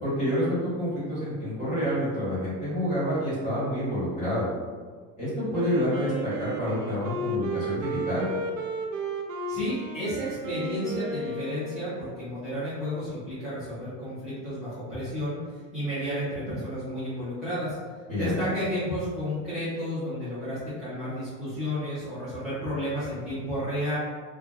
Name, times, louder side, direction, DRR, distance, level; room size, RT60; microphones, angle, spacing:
voice 1, 0.0-4.5 5.2-8.3 18.1-18.4, equal, 20° left, -11 dB, 1.5 m, -28 dB
Wind instrument woodwind instrument, 5.5-12.2, right 1 dB, 85° right, 0.5 m, -33 dB
voice 2, 9.5-15.4 15.7-17.8 18.1-24.0, equal, ahead, -16 dB, 0.7 m, -32 dB
2.9 x 2.4 x 2.3 m, 1.5 s
supercardioid pair, 165°, 38 cm